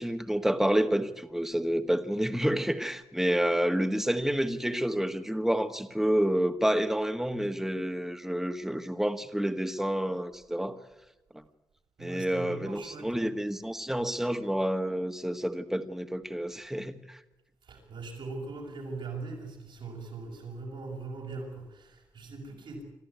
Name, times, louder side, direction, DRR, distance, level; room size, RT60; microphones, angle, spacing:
voice 1, 0.0-10.8 12.0-17.2, equal, 5° right, 7 dB, 1.7 m, -29 dB
voice 2, 12.0-13.4 17.6-22.8, right 3 dB, 80° right, 0 dB, 6.2 m, -40 dB
27.0 x 13.5 x 9.4 m, 1.0 s
supercardioid pair, 40°, 8 cm